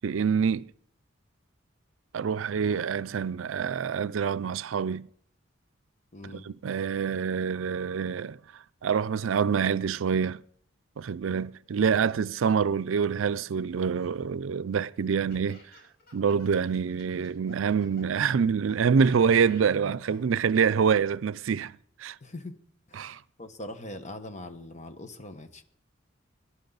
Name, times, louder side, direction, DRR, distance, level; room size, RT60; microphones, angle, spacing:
voice 1, 0.0-0.7 2.1-5.1 6.3-8.4 8.8-10.4 11.0-15.6 16.1-22.2 22.9-23.2, right 6 dB, 85° right, 0.4 m, -26 dB
voice 2, 6.1-6.5 19.7-20.2 22.2-22.6 22.9-25.6, left 1 dB, 35° left, 1.2 m, -42 dB
Laughter, 13.7-18.1 18.7-20.2, left 2 dB, 55° left, 5.7 m, -54 dB
18.5 x 11.5 x 4.0 m
head